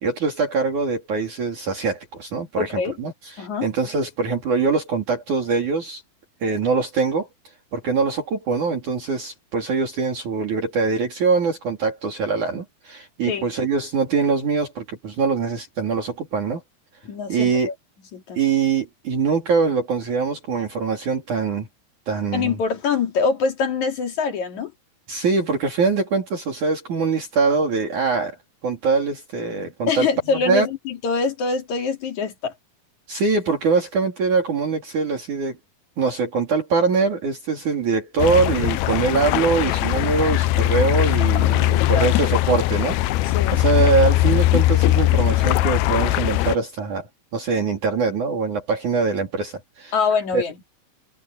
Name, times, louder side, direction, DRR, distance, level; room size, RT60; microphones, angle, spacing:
voice 1, 0.0-6.0 6.4-7.3 7.7-16.6 17.3-17.7 18.4-21.7 22.1-22.6 25.1-28.4 28.6-30.1 30.5-30.7 33.1-35.6 36.0-43.0 43.5-47.1 47.3-50.0 50.3-50.4, right 4 dB, 50° right, 4.3 m, -23 dB
voice 2, 2.6-2.9 3.4-3.7 13.3-13.5 17.0-17.7 18.1-18.4 22.3-24.7 29.9-32.5 41.8-42.1 43.3-43.6 49.9-50.5, left 5 dB, 50° left, 3.6 m, -24 dB
sound 1, 38.2-46.6, left 16 dB, 85° left, 2.5 m, -20 dB
omnidirectional pair, 4.5 m